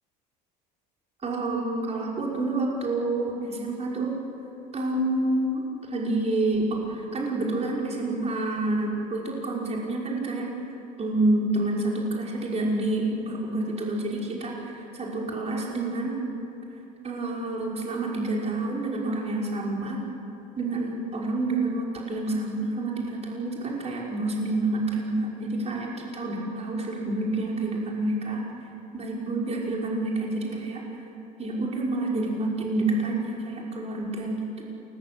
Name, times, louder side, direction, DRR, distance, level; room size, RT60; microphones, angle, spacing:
voice 1, 1.2-4.1 4.7-10.5 11.0-16.2 17.0-20.0 20.6-28.4 28.9-30.8 31.4-34.6, right 2 dB, 30° right, -3 dB, 5.7 m, -28 dB
27.5 x 20.0 x 8.3 m, 3.0 s
supercardioid pair, 90°, 21 cm